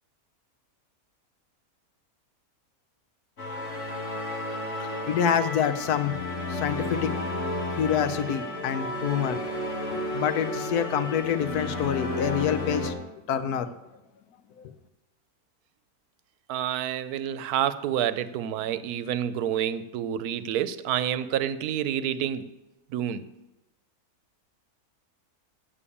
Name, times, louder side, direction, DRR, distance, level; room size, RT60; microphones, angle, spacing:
sound 1, 3.4-12.9, left 2 dB, 55° left, 1.9 m, -32 dB
voice 1, 5.1-6.1 6.5-7.1 7.8-9.4 9.9-12.9 13.3-13.7, left 8 dB, 85° left, 10 dB, 1.3 m, -26 dB
voice 2, 16.5-22.5 22.9-23.2, right 10 dB, 85° right, 14 dB, 1.1 m, -28 dB
8.5 x 7.4 x 6.9 m, 0.96 s
omnidirectional pair, 1.6 m